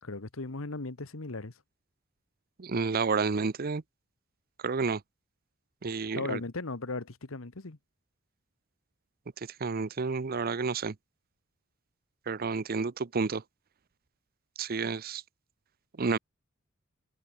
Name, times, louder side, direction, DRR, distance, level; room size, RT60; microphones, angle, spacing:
voice 1, 0.0-1.5 5.9-7.8, left 3 dB, 85° left, 1.4 m, -37 dB
voice 2, 2.6-3.8 4.6-5.0 5.8-6.4 9.6-10.9 12.3-13.4 14.6-15.2 16.0-16.2, right 4 dB, 45° right, 0.6 m, -30 dB
head